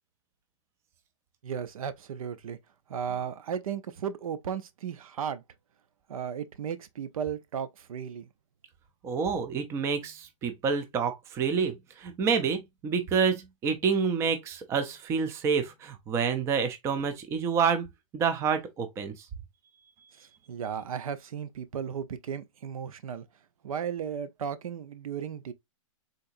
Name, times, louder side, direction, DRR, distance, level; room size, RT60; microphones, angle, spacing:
voice 1, 1.4-2.6 2.9-5.4 6.1-8.3 20.2-23.3 23.6-25.5, right 8 dB, 85° right, 0.6 m, -35 dB
voice 2, 9.0-17.9 18.1-19.1, right 6 dB, 15° right, 0.4 m, -28 dB
3.8 x 2.7 x 2.5 m
hypercardioid pair, 150°, 17 cm